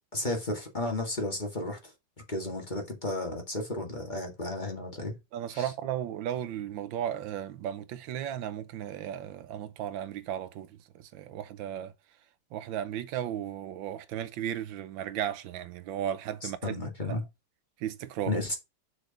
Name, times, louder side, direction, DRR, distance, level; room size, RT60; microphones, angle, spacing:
voice 1, 0.1-1.9 2.3-5.1 5.5-5.7 16.4-17.2 18.3-18.6, left 2 dB, 25° left, 1.9 m, -33 dB
voice 2, 5.3-10.7 11.1-11.9 12.5-16.7 17.0-17.2 17.8-18.3, right 10 dB, 85° right, 1.5 m, -35 dB
6.4 x 4.7 x 5.0 m
omnidirectional pair, 2.1 m